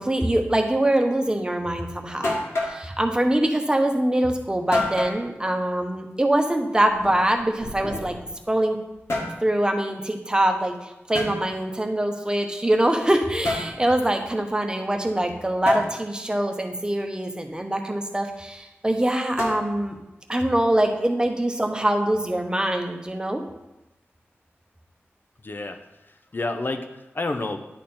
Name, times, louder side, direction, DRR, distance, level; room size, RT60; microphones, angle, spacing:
voice 1, 0.0-2.4 2.6-8.2 8.5-8.8 9.4-20.0 20.3-23.4, right 1 dB, 15° right, 4 dB, 0.9 m, -23 dB
sound 1, 1.7-1.8 2.2-2.8 4.7-5.2 6.9-8.3 8.9-9.4 11.1-11.4 13.4-13.8 15.7-15.9 19.4-19.9, left 2 dB, 75° left, 1.6 m, -27 dB
voice 2, 25.4-27.6, left 2 dB, 45° left, 7 dB, 0.7 m, -30 dB
10.0 x 3.6 x 4.4 m, 0.96 s
wide cardioid pair, 60°, 5 cm